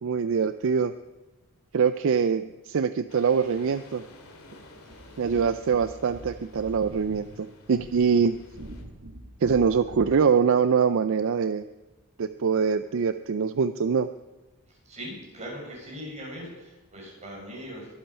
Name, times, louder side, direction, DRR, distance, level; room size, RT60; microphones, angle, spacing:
voice 1, 0.0-0.9 1.7-4.0 5.2-8.4 9.4-11.6 12.2-14.1, right 6 dB, 60° right, 12 dB, 0.4 m, -24 dB
sound 1, 3.1-8.8, left 2 dB, 75° left, 2.2 m, -52 dB
voice 2, 4.9-5.4 14.8-17.9, equal, 30° right, -3 dB, 6.1 m, -40 dB
sound 2, 4.9-10.3, right 1 dB, 75° right, 1.9 m, -44 dB
22.5 x 8.8 x 5.5 m, 1.1 s
head